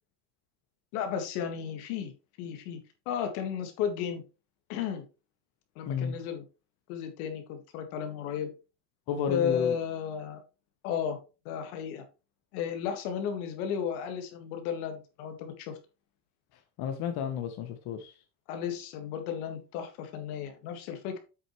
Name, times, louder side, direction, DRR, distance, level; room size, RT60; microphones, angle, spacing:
voice 1, 0.9-2.1 2.4-2.8 3.1-4.2 4.7-5.0 5.8-6.4 6.9-8.5 9.3-10.4 10.8-11.2 11.5-12.0 12.5-15.8 18.5-21.2, left 8 dB, 80° left, 6 dB, 1.9 m, -33 dB
voice 2, 9.1-9.8 16.8-18.1, left 7 dB, 60° left, 6 dB, 1.2 m, -31 dB
8.0 x 6.3 x 3.2 m, 0.31 s
supercardioid pair, 95°, 43 cm